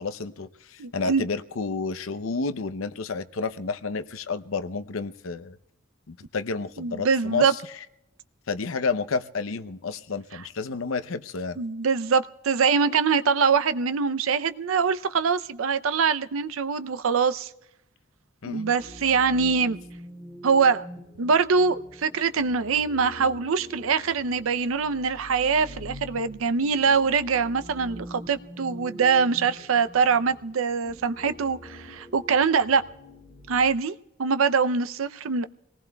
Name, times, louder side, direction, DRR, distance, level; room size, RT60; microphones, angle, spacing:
voice 1, 0.0-5.6 6.1-7.6 8.5-11.6 18.4-18.7, left 4 dB, 85° left, 0.7 m, -30 dB
voice 2, 0.8-1.2 6.8-7.5 11.6-17.5 18.5-19.8 20.4-20.9 21.2-32.8 33.5-35.5, right 5 dB, 85° right, 0.6 m, -23 dB
sound 1, 18.8-33.7, equal, ahead, 5.0 m, -44 dB
27.5 x 19.0 x 2.3 m
head